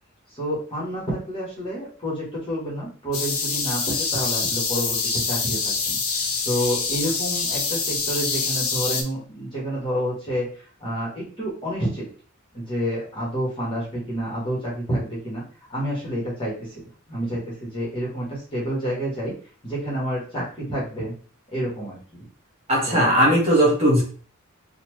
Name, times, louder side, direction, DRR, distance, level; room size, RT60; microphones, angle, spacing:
voice 1, 0.3-10.5 10.8-12.1 12.5-15.4 15.7-16.8 17.1-19.3 19.6-21.1 21.5-22.3 22.9-23.2, equal, 25° left, -6 dB, 1.5 m, -29 dB
sound 1, 3.1-9.0, left 4 dB, 80° left, 0.9 m, -25 dB
voice 2, 22.7-24.0, equal, 30° right, -4 dB, 1.7 m, -18 dB
4.2 x 2.5 x 3.0 m, 0.41 s
head